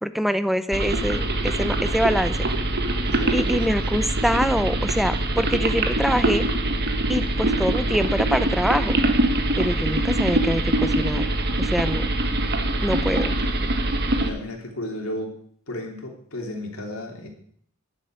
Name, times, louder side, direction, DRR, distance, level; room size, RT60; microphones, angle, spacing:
voice 1, 0.0-2.5 3.3-6.4 7.1-9.0 9.6-11.2 11.6-12.1 12.8-13.3, equal, ahead, 12 dB, 0.6 m, -24 dB
sound 1, 0.7-14.3, right 1 dB, 50° right, 1.4 m, -23 dB
voice 2, 3.0-3.7 13.5-13.6 14.2-15.3 15.7-17.3, left 1 dB, 70° left, 1 dB, 3.3 m, -34 dB
11.5 x 7.6 x 8.9 m, 0.63 s
head